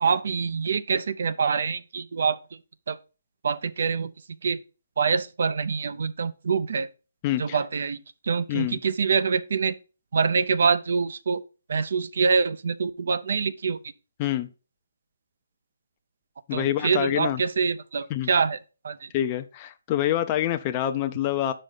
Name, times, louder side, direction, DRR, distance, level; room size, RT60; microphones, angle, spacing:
voice 1, 0.0-2.4 2.9-3.0 3.4-4.1 4.4-4.6 5.0-6.9 7.4-9.8 10.1-11.4 11.7-13.8 16.5-18.6 18.8-19.1, right 5 dB, 65° right, 0.5 m, -25 dB
voice 2, 7.2-7.6 8.5-8.8 14.2-14.5 16.5-17.4 18.1-18.3 19.1-21.5, left 12 dB, 25° left, 0.4 m, -26 dB
7.2 x 5.1 x 3.9 m
hypercardioid pair, 155°, 0 cm